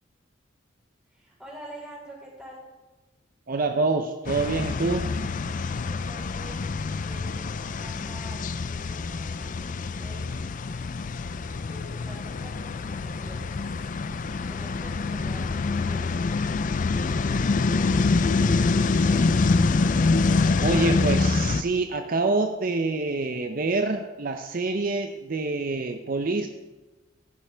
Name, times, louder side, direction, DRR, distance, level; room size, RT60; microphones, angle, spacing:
voice 1, 1.1-2.6 5.6-8.4 8.7-10.5 11.6-13.6 14.5-18.7, right 1 dB, 5° right, -5 dB, 4.4 m, -47 dB
voice 2, 3.5-5.1 20.6-26.5, right 3 dB, 50° right, 6 dB, 0.6 m, -26 dB
sound 1, 4.3-21.6, left 3 dB, 45° left, 0.4 m, -25 dB
15.0 x 9.9 x 3.4 m, 1.2 s
head